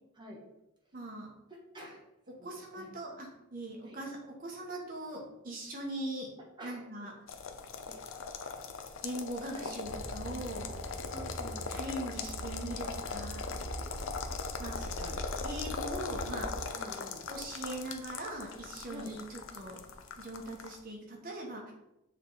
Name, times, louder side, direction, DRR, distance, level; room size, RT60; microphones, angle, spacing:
voice 1, 0.9-1.3 2.3-6.3 6.6-7.1 9.0-10.8 11.7-13.5 14.6-14.7 15.4-16.5 17.3-19.8 20.2-21.7, right 1 dB, 40° right, -1 dB, 1.3 m, -41 dB
voice 2, 1.5-2.0 2.4-2.9 3.8-4.0 6.4-7.1 7.9-8.0 9.5-9.7 11.1-11.7 14.6-15.3 16.7-17.3 18.9-19.1, equal, 20° right, -2 dB, 1.2 m, -48 dB
sound 1, 7.3-20.8, left 5 dB, 60° left, 0.6 m, -40 dB
sound 2, 9.8-16.6, right 1 dB, 70° right, 0.7 m, -42 dB
7.3 x 3.3 x 4.0 m, 0.90 s
head